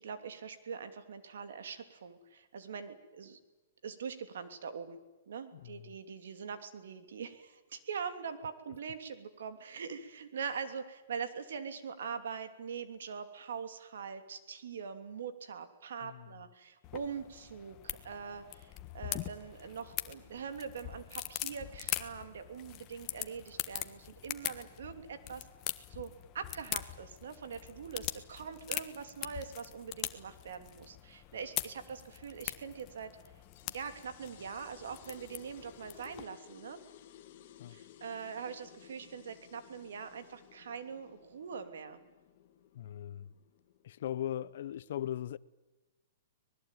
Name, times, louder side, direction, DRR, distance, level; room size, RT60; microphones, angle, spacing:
voice 1, 0.0-3.4 3.8-5.0 5.3-25.5 25.9-33.1 33.7-36.8 37.7-42.0, right 6 dB, 80° right, 3.0 m, -43 dB
voice 2, 5.5-6.0 16.0-16.4 37.6-37.8 42.7-43.3 43.8-45.4, left 11 dB, 65° left, 0.8 m, -39 dB
sound 1, 16.8-36.2, left 15 dB, 30° left, 1.4 m, -42 dB
sound 2, 33.4-44.4, left 11 dB, 45° left, 2.9 m, -57 dB
24.5 x 20.0 x 9.2 m
hypercardioid pair, 150°, 0 cm